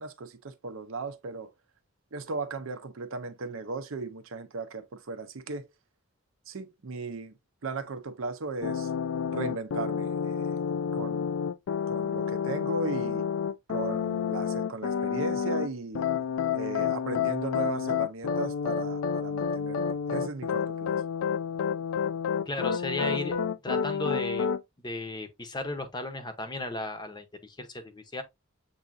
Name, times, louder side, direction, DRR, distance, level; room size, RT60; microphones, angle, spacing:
voice 1, 0.0-1.5 2.1-5.7 6.5-7.3 7.6-8.9 9.3-10.7 10.9-11.4 11.9-13.3 13.7-16.1 16.5-21.0, right 3 dB, 75° right, 0.6 m, -36 dB
sound 1, 8.6-15.7 15.9-24.6, left 7 dB, 80° left, 0.4 m, -29 dB
voice 2, 22.5-23.4 23.6-24.5 24.8-28.2, left 2 dB, 20° left, 0.7 m, -35 dB
7.0 x 2.7 x 2.4 m
head